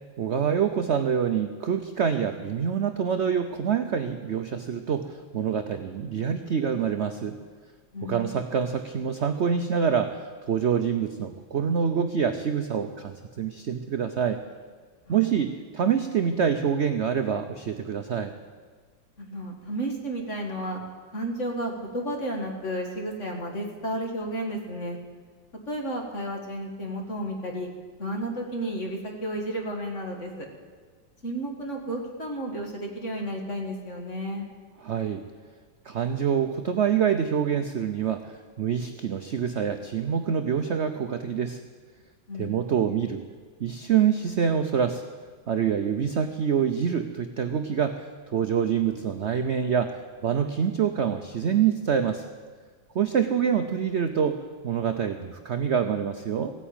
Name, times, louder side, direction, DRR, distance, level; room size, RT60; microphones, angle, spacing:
voice 1, 0.2-7.4 8.0-14.4 15.1-18.3 34.8-35.2 35.8-41.6 42.3-43.2 43.6-45.0 45.5-52.2 52.9-56.5, right 7 dB, 75° right, 8 dB, 0.6 m, -26 dB
voice 2, 7.9-8.4 15.1-15.4 19.2-20.8 21.1-25.0 25.7-27.7 28.0-30.5 31.2-34.5 42.3-42.7 53.0-53.2, right 1 dB, 40° left, 2 dB, 2.3 m, -32 dB
16.0 x 9.4 x 8.9 m, 1.5 s
omnidirectional pair, 2.1 m